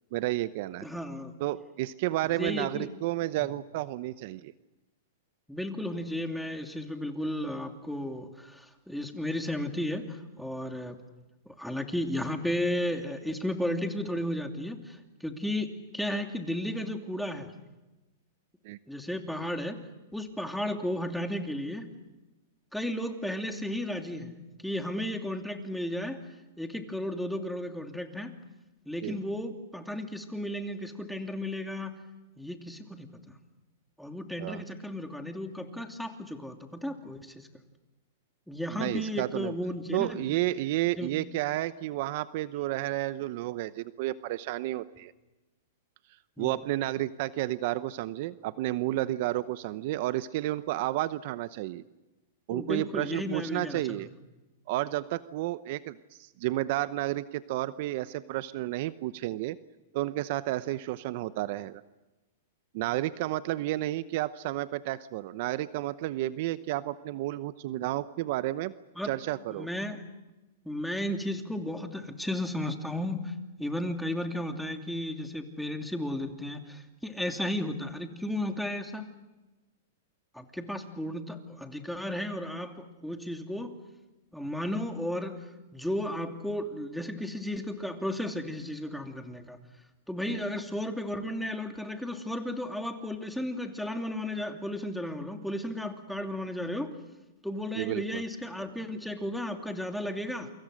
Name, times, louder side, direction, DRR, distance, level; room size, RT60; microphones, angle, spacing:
voice 1, 0.1-0.9 1.4-4.5 18.6-18.8 29.0-29.2 34.4-34.6 38.7-39.5 39.9-45.1 46.4-51.8 52.5-54.1 54.7-59.6 59.9-61.8 62.7-68.7 69.0-69.7 90.3-90.4 97.8-98.2, right 16 dB, 55° right, 15 dB, 0.9 m, -31 dB
voice 2, 0.8-1.3 2.4-2.9 5.5-11.0 11.5-17.5 18.9-19.8 20.1-21.9 22.7-24.3 24.6-26.2 26.6-28.3 28.9-31.9 32.4-33.4 34.0-37.5 38.5-40.3 41.0-41.2 46.4-46.6 52.5-54.0 69.0-69.1 69.5-70.0 70.6-79.1 80.3-83.7 84.3-85.4 85.7-89.6 90.1-96.9 97.4-100.5, left 1 dB, ahead, 5 dB, 2.8 m, -34 dB
28.5 x 25.0 x 6.6 m, 1.1 s
hypercardioid pair, 130°, 0 cm